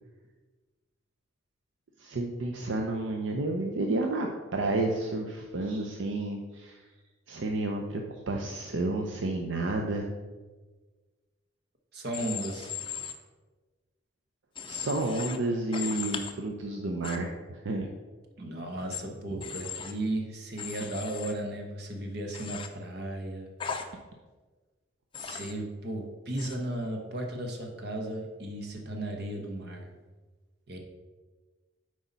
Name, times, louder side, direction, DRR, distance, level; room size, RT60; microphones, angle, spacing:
voice 1, 2.0-6.8 7.3-10.1 14.7-17.9, right 2 dB, 75° right, 2 dB, 0.6 m, -31 dB
voice 2, 11.9-12.7 18.4-23.5 25.2-29.9 30.7-30.8, right 1 dB, 55° right, 3 dB, 1.0 m, -35 dB
Human voice / Train, 12.1-13.1 14.5-15.4 15.7-16.3 17.0-17.2 18.9-19.0 19.4-19.9 20.6-21.3 22.3-22.7 23.6-23.8 25.1-25.5 26.4-26.6, left 7 dB, 25° left, 0.5 m, -37 dB
8.1 x 4.9 x 4.0 m, 1.3 s
head